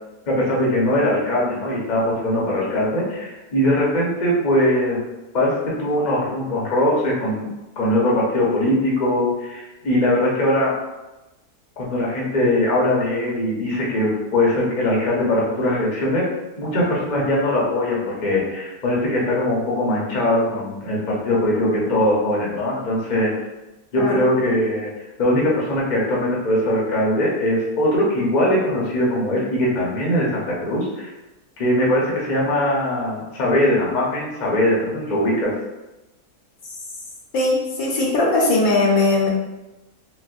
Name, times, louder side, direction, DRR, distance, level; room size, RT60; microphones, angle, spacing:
voice 1, 0.3-5.0 5.3-10.8 11.8-16.3 16.6-23.3 23.9-24.9 25.2-31.1 31.6-35.5, left 1 dB, 40° left, -4 dB, 0.7 m, -21 dB
voice 2, 24.0-24.3 37.3-39.3, left 2 dB, 70° left, -2 dB, 1.1 m, -19 dB
4.1 x 2.1 x 2.5 m, 1.0 s
omnidirectional pair, 1.6 m